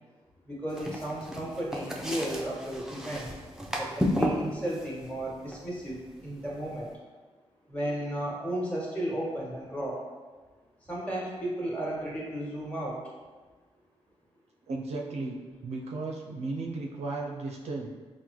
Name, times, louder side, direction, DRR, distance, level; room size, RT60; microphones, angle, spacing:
voice 1, 0.5-3.3 3.8-6.9 7.7-10.1 10.9-13.0, right 1 dB, 10° left, -4 dB, 1.1 m, -34 dB
sound 1, 0.7-6.9, equal, 5° right, 0.4 m, -34 dB
voice 2, 14.7-17.9, right 3 dB, 75° right, 0 dB, 0.4 m, -35 dB
3.7 x 2.1 x 3.0 m, 1.3 s
cardioid pair, 60°, 11 cm